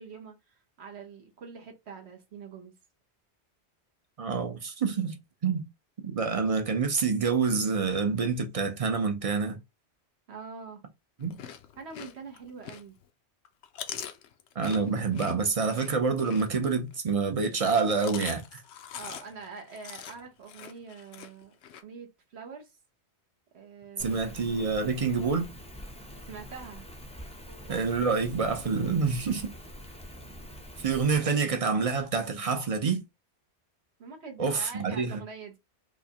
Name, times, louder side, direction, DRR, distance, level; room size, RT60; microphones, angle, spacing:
voice 1, 0.0-2.7 10.3-10.8 11.8-12.9 18.9-21.6 21.8-22.7 23.5-24.4 26.2-26.9 27.5-27.8 34.0-35.6, right 5 dB, 70° right, 1.2 m, -44 dB
voice 2, 4.2-5.2 5.4-5.6 6.0-9.6 11.2-11.4 14.6-18.6 24.0-25.5 27.7-29.5 30.8-33.0 34.4-35.2, right 5 dB, 40° right, 0.6 m, -27 dB
Chewing mastication, 11.2-13.1 13.4-17.0 17.7-21.8, left 9 dB, 80° left, 0.9 m, -43 dB
Rain, 24.0-31.2, equal, 5° left, 0.6 m, -45 dB
4.7 x 2.2 x 2.8 m
omnidirectional pair, 1.1 m